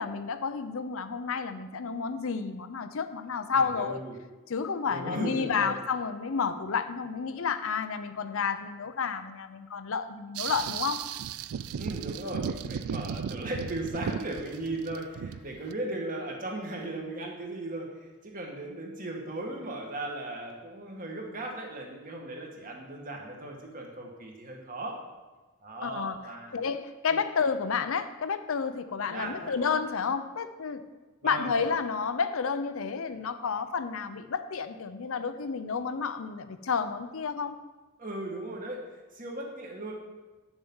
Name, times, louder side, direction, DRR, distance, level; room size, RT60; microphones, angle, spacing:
voice 1, 0.0-4.0 4.5-11.1 25.8-26.2 26.5-30.8 31.2-37.6, left 5 dB, 60° left, 10 dB, 0.5 m, -31 dB
voice 2, 3.5-4.1 4.9-5.8 11.8-25.0 25.6-26.5 27.1-27.2 29.1-29.5 31.2-31.6 38.0-38.8 39.1-39.9, right 2 dB, 35° right, 0 dB, 1.8 m, -37 dB
sound 1, 10.3-15.7, right 7 dB, 70° right, 0.3 m, -35 dB
9.2 x 7.0 x 5.5 m, 1.2 s
head